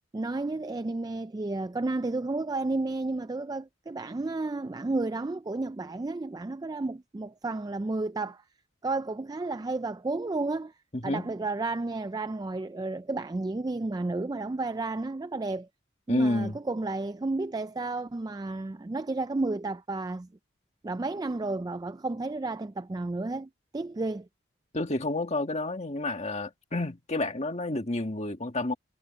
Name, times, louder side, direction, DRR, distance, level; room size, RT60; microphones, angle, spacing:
voice 1, 0.0-8.4 8.8-10.7 11.0-15.7 16.1-20.3 20.8-24.3, right 2 dB, 20° right, 0.3 m, -32 dB
voice 2, 10.9-11.3 16.1-16.6 24.7-28.7, left 2 dB, 35° left, 1.9 m, -29 dB
head